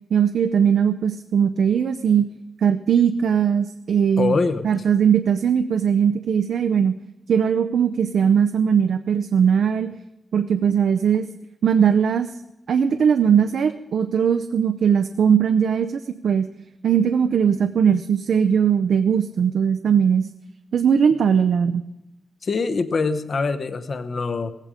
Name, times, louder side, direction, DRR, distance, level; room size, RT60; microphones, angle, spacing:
voice 1, 0.1-2.3 2.6-4.3 4.6-6.9 7.3-9.9 10.3-11.3 11.6-12.3 12.7-16.5 16.8-20.3 20.7-21.8, right 7 dB, 70° right, 9 dB, 0.6 m, -19 dB
voice 2, 4.2-4.6 22.4-24.5, left 4 dB, 40° left, 11 dB, 0.9 m, -23 dB
17.0 x 15.0 x 5.0 m, 0.91 s
wide cardioid pair, 170°, 0 cm